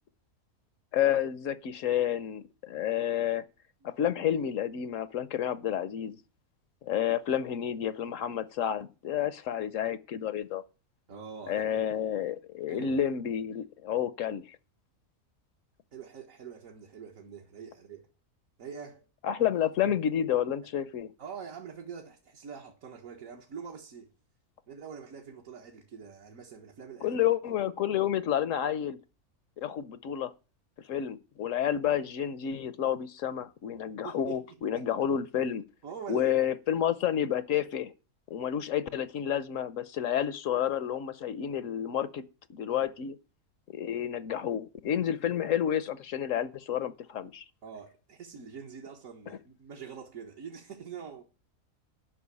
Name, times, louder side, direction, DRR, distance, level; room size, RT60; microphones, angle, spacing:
voice 1, 0.9-3.4 3.8-6.2 6.8-10.6 11.5-14.6 19.2-21.1 27.0-29.0 29.6-30.3 30.9-35.6 36.1-37.9 38.3-42.2 42.5-43.2 43.7-47.4, left 10 dB, 65° left, 1.0 m, -30 dB
voice 2, 11.1-11.8 12.7-12.9 15.9-18.1 18.6-19.1 21.2-24.1 24.7-27.2 34.0-34.9 35.8-36.3 42.7-42.8 47.6-51.2, right 7 dB, 65° right, 1.8 m, -44 dB
11.0 x 5.9 x 8.4 m
omnidirectional pair, 1.5 m